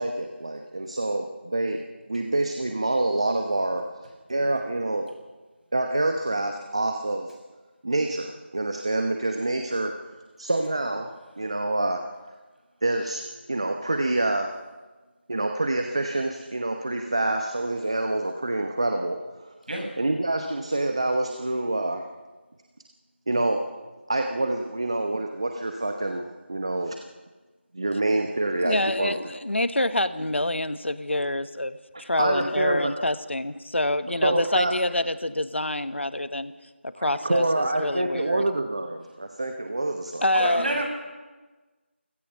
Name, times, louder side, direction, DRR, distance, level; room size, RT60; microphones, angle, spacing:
voice 1, 0.0-1.8 2.1-3.8 4.3-5.1 5.7-7.3 7.8-9.9 10.4-11.1 11.4-12.0 12.8-13.2 13.5-14.5 15.3-19.5 20.0-22.0 23.3-23.6 24.1-27.0 27.7-29.1 32.2-32.9 34.1-34.7 37.0-40.2, right 2 dB, 30° right, 5 dB, 1.0 m, -26 dB
voice 2, 28.6-36.5 36.8-37.4 37.8-38.4 40.2-40.7, left 1 dB, 75° left, 12 dB, 1.3 m, -26 dB
voice 3, 40.3-40.8, right 1 dB, 50° right, 1 dB, 6.5 m, -27 dB
29.0 x 16.0 x 5.7 m, 1.3 s
figure-of-eight pair, 175°, 7 cm